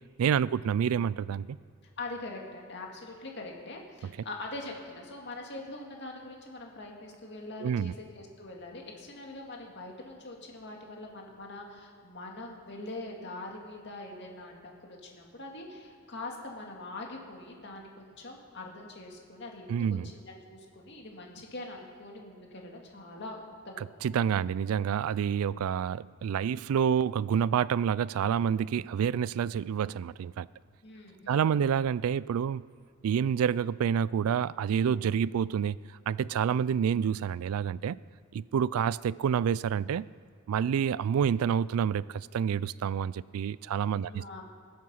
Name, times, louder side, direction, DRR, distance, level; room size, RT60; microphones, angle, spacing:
voice 1, 0.2-1.6 7.6-7.9 19.7-20.1 24.0-30.5 31.3-32.6 33.0-38.0 38.3-40.1 40.5-44.2, right 8 dB, 90° right, 20 dB, 0.3 m, -28 dB
voice 2, 2.0-23.8 30.8-31.5 44.0-44.4, left 2 dB, 55° left, 0 dB, 2.2 m, -43 dB
20.0 x 7.8 x 5.6 m, 2.3 s
head